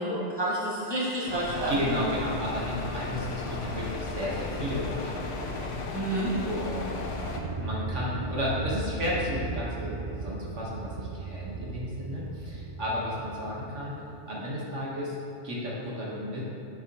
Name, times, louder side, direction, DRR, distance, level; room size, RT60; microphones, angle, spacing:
voice 1, 0.0-1.7 5.9-6.3, right 1 dB, 20° right, -8 dB, 1.8 m, -29 dB
sound 1, 1.3-7.4, left 3 dB, 85° left, 1.2 m, -35 dB
voice 2, 1.7-5.8 6.4-7.0 7.6-13.9 14.3-15.1 15.4-16.4, equal, 85° right, -5 dB, 2.0 m, -33 dB
sound 2, 7.3-14.0, right 3 dB, 50° right, 0.4 m, -36 dB
9.2 x 6.7 x 3.1 m, 2.9 s
omnidirectional pair, 1.2 m